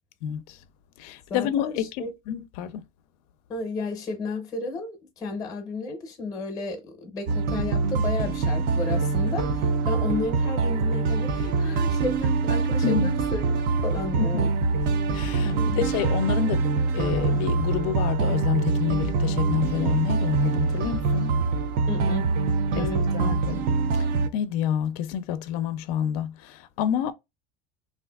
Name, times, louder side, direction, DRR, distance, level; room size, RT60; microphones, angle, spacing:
voice 1, 0.2-0.6 1.0-1.9 2.3-2.8 12.8-13.1 14.2-14.3 15.1-16.7 16.9-21.4 22.7-23.6 24.0-27.1, left 9 dB, 75° left, 0.4 m, -28 dB
voice 2, 1.3-2.1 3.5-14.5 15.5-15.9 21.9-22.3 22.7-23.6, left 3 dB, 20° left, 0.6 m, -33 dB
sound 1, 7.3-24.3, right 4 dB, 50° right, 0.4 m, -24 dB
3.4 x 2.5 x 2.2 m
cardioid pair, 155°, 19 cm